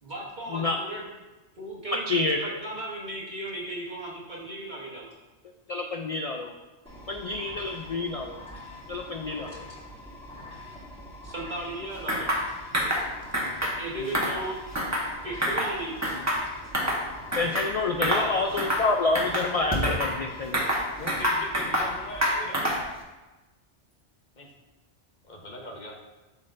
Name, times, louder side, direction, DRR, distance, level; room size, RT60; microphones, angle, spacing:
voice 1, 0.0-1.0 1.6-2.1 2.4-5.1 11.2-12.3 13.6-14.5 15.2-15.9 18.0-18.3, right 1 dB, 45° right, -4 dB, 1.1 m, -36 dB
voice 2, 2.1-2.4 5.7-6.5 7.1-8.4 8.9-9.7 14.0-14.3 17.3-20.7, left 3 dB, 70° left, 3 dB, 0.3 m, -28 dB
sound 1, 6.9-22.5, left 1 dB, 5° left, 1.4 m, -44 dB
sound 2, 12.1-12.4 12.7-13.0 13.3-13.7 14.1-15.1 15.4-15.7 16.0-17.0 17.3-17.7 18.0-18.3 18.6-18.9 19.1-20.1 20.5-21.9 22.2-22.9, equal, 15° right, 1.0 m, -27 dB
voice 3, 21.0-22.6 24.4-24.5 25.2-26.0, left 1 dB, 45° left, 0 dB, 0.9 m, -40 dB
11.5 x 4.0 x 2.5 m, 1.1 s
omnidirectional pair, 1.2 m